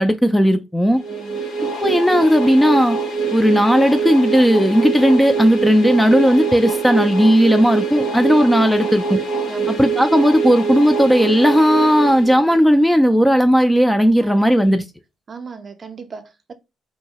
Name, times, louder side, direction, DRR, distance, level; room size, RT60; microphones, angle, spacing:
voice 1, 0.0-1.0 1.6-3.0 3.3-9.2 9.7-14.8, equal, 5° left, 0.4 m, -15 dB
sound 1, 1.0-12.8, right 4 dB, 80° left, 1.0 m, -24 dB
voice 2, 1.1-1.4 7.9-8.2 9.5-9.9 14.2-14.6 15.3-16.5, right 4 dB, 45° right, 0.5 m, -37 dB
2.7 x 2.2 x 2.8 m
hypercardioid pair, 50°, 0 cm